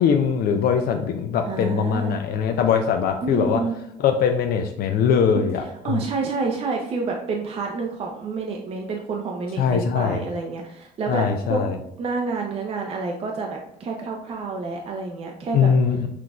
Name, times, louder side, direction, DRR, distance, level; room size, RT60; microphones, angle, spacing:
voice 1, 0.0-3.6 4.0-6.0 9.6-10.2 11.1-11.8 15.5-16.1, left 7 dB, 65° left, 5 dB, 0.4 m, -21 dB
voice 2, 1.5-2.2 3.2-3.8 5.3-11.6 12.0-15.7, right 4 dB, 35° right, 1 dB, 0.5 m, -29 dB
5.8 x 2.5 x 2.3 m, 0.73 s
cardioid pair, 110°, 17 cm